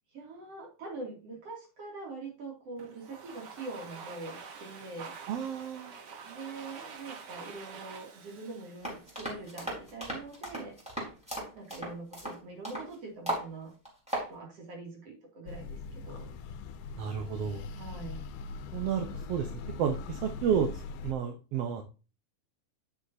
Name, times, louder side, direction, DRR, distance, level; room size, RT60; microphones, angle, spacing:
voice 1, 0.1-5.1 6.2-10.8 11.5-13.7 14.3-16.3 17.7-18.2, right 3 dB, 50° right, 0 dB, 3.4 m, -43 dB
Domestic sounds home sounds, 2.8-9.7, right 5 dB, 85° right, 0.9 m, -47 dB
voice 2, 5.3-5.9 17.0-17.7 18.7-19.5 19.8-20.7 21.0-21.8, right 8 dB, 70° right, 5 dB, 1.5 m, -31 dB
sound 1, 8.8-12.9 13.3-13.5 13.9-14.3, right 1 dB, ahead, 3.8 m, -36 dB
sound 2, 15.5-21.1, left 4 dB, 75° left, 2.2 m, -41 dB
9.1 x 7.1 x 2.7 m, 0.32 s
omnidirectional pair, 3.7 m